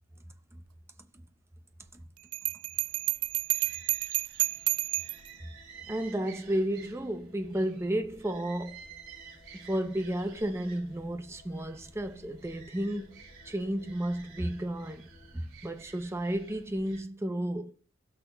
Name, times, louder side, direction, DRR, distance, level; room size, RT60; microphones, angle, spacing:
Bell, 2.3-5.3, right 18 dB, 80° right, 0.4 m, -30 dB
sound 1, 2.7-17.0, right 5 dB, 60° right, 4.6 m, -53 dB
sound 2, 4.4-15.4, left 2 dB, 40° left, 1.6 m, -60 dB
voice 1, 5.9-8.8 9.5-13.1 13.4-15.1 15.3-17.7, right 1 dB, 10° right, 0.6 m, -32 dB
16.0 x 5.9 x 2.3 m
head